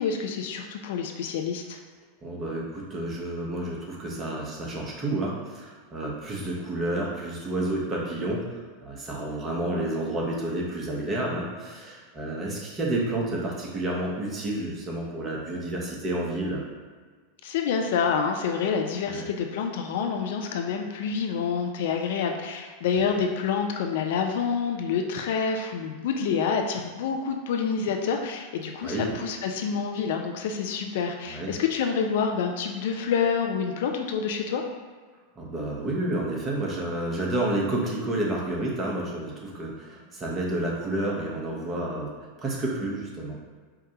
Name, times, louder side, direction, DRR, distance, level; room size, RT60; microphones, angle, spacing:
voice 1, 0.0-1.8 17.4-34.6, left 6 dB, 65° left, 3 dB, 0.4 m, -27 dB
voice 2, 2.2-16.6 19.1-19.3 28.8-29.2 31.3-31.5 35.4-42.1 42.4-43.4, right 1 dB, 30° right, -3 dB, 1.0 m, -30 dB
4.7 x 2.2 x 2.8 m, 1.5 s
figure-of-eight pair, 90°, 0 cm